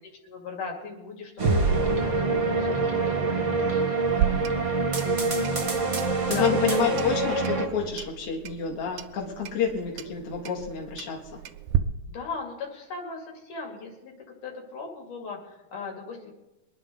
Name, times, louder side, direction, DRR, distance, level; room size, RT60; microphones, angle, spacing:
voice 1, 0.0-3.9 4.2-4.6 6.3-6.9 12.1-14.1 14.4-16.3, left 4 dB, 80° left, -1 dB, 4.2 m, -38 dB
sound 1, 1.4-7.7, right 3 dB, 35° right, 1.4 m, -26 dB
sound 2, 1.4-3.2, right 4 dB, 55° right, 1.5 m, -27 dB
Clock, 4.1-11.8, right 10 dB, 80° right, 2.1 m, -34 dB
voice 2, 5.0-5.7 6.3-11.2, left 6 dB, 50° left, -1 dB, 2.9 m, -29 dB
24.5 x 10.5 x 3.9 m, 1.0 s
omnidirectional pair, 3.6 m